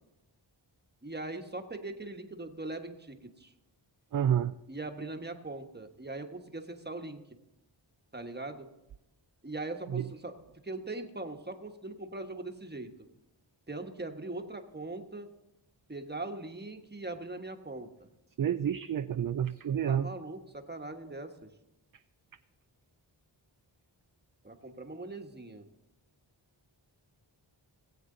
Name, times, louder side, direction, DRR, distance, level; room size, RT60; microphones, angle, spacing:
voice 1, 1.0-3.5 4.7-7.2 8.1-8.7 9.4-10.4 10.6-12.9 13.7-15.3 15.9-17.9 19.9-21.3 24.4-25.7, right 2 dB, 20° right, 5 dB, 1.2 m, -40 dB
voice 2, 4.1-4.5 9.9-10.0 18.4-20.1, right 9 dB, 45° right, 11 dB, 0.4 m, -29 dB
19.0 x 8.0 x 3.8 m, 0.91 s
wide cardioid pair, 55°, 47 cm